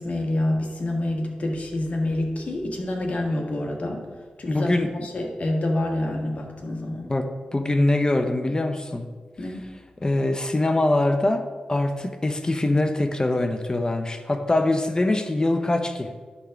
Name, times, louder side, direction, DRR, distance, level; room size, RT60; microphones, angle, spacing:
voice 1, 0.0-4.0 4.4-7.1 9.4-9.6, left 1 dB, 55° left, 1 dB, 1.7 m, -27 dB
voice 2, 4.4-4.9 7.0-9.1 10.0-16.1, left 2 dB, 25° left, 7 dB, 0.7 m, -23 dB
10.5 x 3.7 x 5.8 m, 1.5 s
cardioid pair, 55°, 3 cm